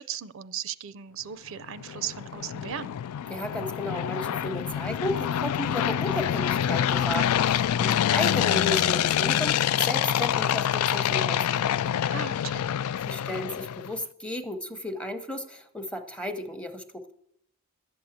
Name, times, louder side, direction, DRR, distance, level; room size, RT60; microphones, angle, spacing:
voice 1, 0.0-3.0 12.1-12.6, right 9 dB, 60° right, 15 dB, 0.5 m, -37 dB
sound 1, 1.6-13.9, left 10 dB, 80° left, 0.3 m, -26 dB
voice 2, 3.3-11.8 13.1-17.1, equal, 5° left, 8 dB, 0.7 m, -34 dB
11.5 x 7.8 x 7.1 m, 0.76 s
head